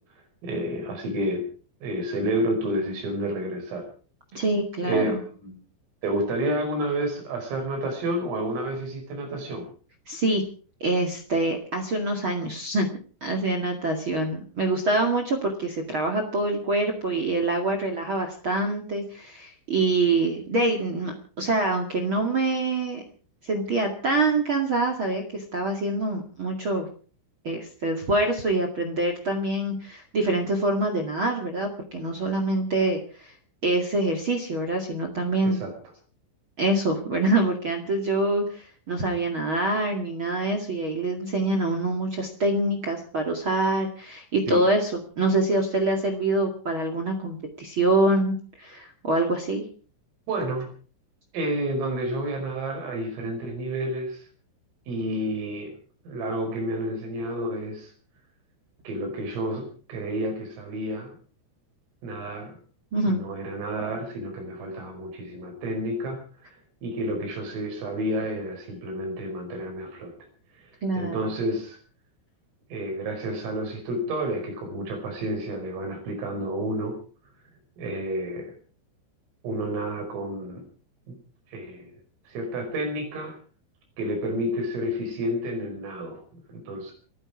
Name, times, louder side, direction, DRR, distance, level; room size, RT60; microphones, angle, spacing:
voice 1, 0.4-1.5 1.8-3.9 4.3-4.5 4.8-5.6 6.0-9.7 35.4-35.7 44.5-44.6 50.3-50.7 51.3-54.2 54.9-55.7 56.1-57.9 58.9-61.2 62.0-62.6 63.0-66.2 66.8-70.1 70.6-70.7 71.0-71.8 72.7-77.0 77.8-78.5 79.4-80.7 81.1-81.2 81.5-81.9 82.3-83.4 84.0-86.9, right 1 dB, 80° right, 4 dB, 7.7 m, -30 dB
voice 2, 4.3-5.2 10.1-10.4 10.8-12.9 13.2-23.0 23.4-26.9 27.4-33.3 33.6-35.6 36.6-44.9 45.1-49.6 62.9-63.2 70.8-71.2, right 2 dB, 45° right, 5 dB, 1.7 m, -25 dB
29.5 x 10.0 x 4.9 m, 0.41 s
omnidirectional pair, 5.8 m